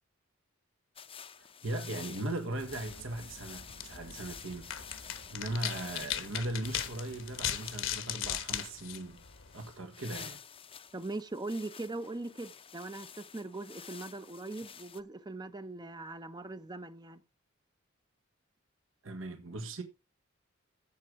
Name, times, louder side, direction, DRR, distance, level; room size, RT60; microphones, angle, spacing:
sound 1, 1.0-15.0, left 7 dB, 30° left, 0.7 m, -50 dB
voice 1, 1.4-9.2 9.5-10.4 19.0-19.8, right 2 dB, 75° right, 1.6 m, -39 dB
sound 2, 2.5-8.0, right 2 dB, 45° right, 1.5 m, -56 dB
sound 3, 2.9-9.8, left 10 dB, 70° left, 1.2 m, -39 dB
voice 2, 10.9-17.2, right 2 dB, 20° right, 0.7 m, -40 dB
14.5 x 5.3 x 4.8 m
head